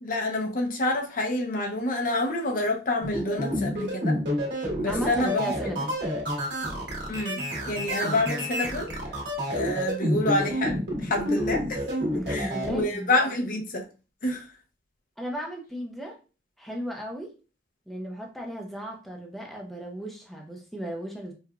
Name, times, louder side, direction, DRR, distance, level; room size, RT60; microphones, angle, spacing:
voice 1, 0.0-4.2 4.8-5.5 7.1-8.9 9.5-11.8 12.3-13.8 14.2-14.4, left 2 dB, 50° left, 0.6 m, -28 dB
sound 1, 3.0-12.8, equal, 80° right, 1.3 m, -29 dB
voice 2, 4.9-6.0 12.1-13.1 15.2-16.2 16.6-17.3 17.9-21.3, equal, ahead, 0.6 m, -35 dB
4.6 x 2.3 x 2.3 m
head